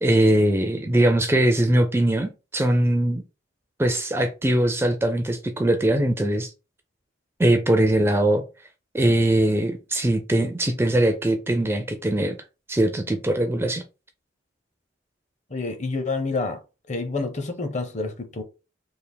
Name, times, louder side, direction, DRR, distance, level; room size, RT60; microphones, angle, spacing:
voice 1, 0.0-3.2 3.8-6.5 7.4-8.4 8.9-12.4 12.7-13.8, right 1 dB, 10° right, 0.4 m, -21 dB
voice 2, 15.5-16.6 16.9-18.4, left 3 dB, 35° left, 0.7 m, -28 dB
3.3 x 2.5 x 3.9 m
head